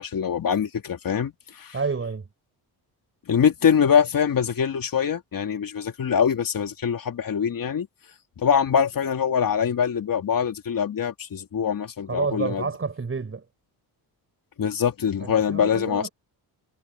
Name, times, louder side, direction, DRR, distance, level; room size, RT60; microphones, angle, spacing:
voice 1, 0.0-1.7 3.3-7.9 8.4-12.7 14.6-16.1, left 7 dB, 55° left, 3.0 m, -23 dB
voice 2, 1.7-2.3 12.1-13.4 15.2-16.1, right 4 dB, 30° right, 6.8 m, -29 dB
cardioid pair, 110°, 40 cm